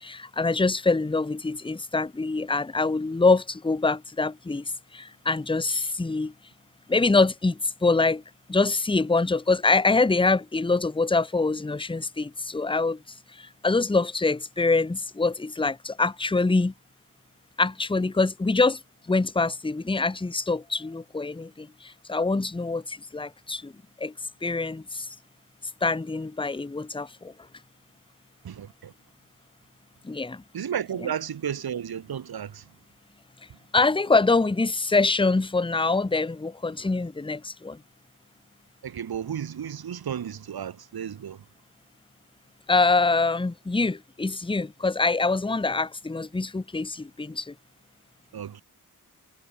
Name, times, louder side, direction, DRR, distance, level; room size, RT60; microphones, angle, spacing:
voice 1, 0.0-6.3 6.9-8.2 8.5-13.0 13.3-16.7 17.6-18.8 19.1-23.7 24.0-24.1 24.4-25.1 25.8-27.3 30.0-30.4 33.7-37.8 42.7-47.5, left 3 dB, 15° left, 0.8 m, -24 dB
voice 2, 28.4-28.9 30.5-32.6 38.8-41.4 48.3-48.6, right 9 dB, 85° right, 1.1 m, -33 dB
wide cardioid pair, 80°, 36 cm